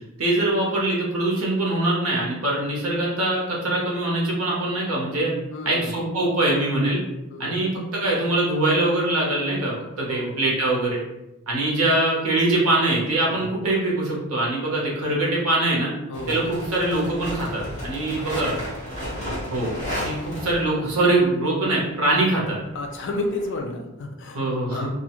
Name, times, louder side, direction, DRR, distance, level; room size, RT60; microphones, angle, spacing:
voice 1, 0.2-5.3 5.6-7.0 7.4-11.0 11.5-15.9 16.3-18.5 19.5-22.6 24.3-24.9, right 2 dB, 75° right, -3 dB, 0.9 m, -23 dB
voice 2, 5.5-6.0 7.3-7.6 10.1-10.4 13.3-13.6 16.1-16.5 18.2-18.6 22.7-24.4 24.7-24.9, left 2 dB, 55° left, 3 dB, 0.4 m, -32 dB
sound 1, 16.1-21.0 22.1-23.6, equal, 30° left, 1.2 m, -33 dB
2.4 x 2.3 x 2.9 m, 0.94 s
head